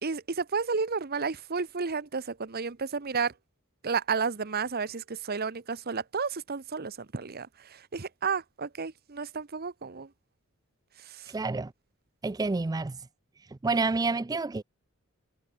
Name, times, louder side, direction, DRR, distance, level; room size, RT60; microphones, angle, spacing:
voice 1, 0.0-3.3 3.8-10.1 11.0-11.3, right 5 dB, 45° right, 0.9 m, -32 dB
voice 2, 11.3-11.7 12.2-13.0 13.6-14.6, right 3 dB, 15° right, 0.4 m, -28 dB
head